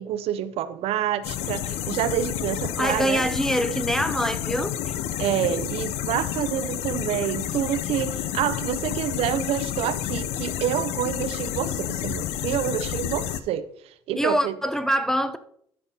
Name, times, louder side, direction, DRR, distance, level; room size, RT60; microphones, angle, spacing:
voice 1, 0.0-3.3 5.2-13.7 14.1-14.6, right 11 dB, 65° right, 0.5 m, -27 dB
sound 1, 1.2-13.4, left 11 dB, 75° left, 0.5 m, -30 dB
voice 2, 2.8-4.7 14.2-15.4, equal, 5° left, 0.4 m, -24 dB
12.5 x 5.5 x 2.8 m
cardioid pair, 105°, 11 cm